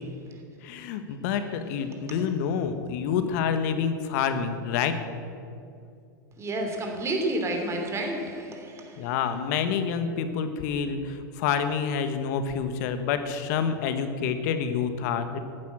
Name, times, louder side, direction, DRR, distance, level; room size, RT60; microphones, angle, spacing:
voice 1, 0.6-4.9 9.0-15.4, left 7 dB, 60° left, 9 dB, 1.5 m, -28 dB
voice 2, 6.4-9.1, right 1 dB, 25° right, 3 dB, 3.0 m, -30 dB
14.5 x 9.3 x 7.6 m, 2.5 s
hypercardioid pair, 105°, 11 cm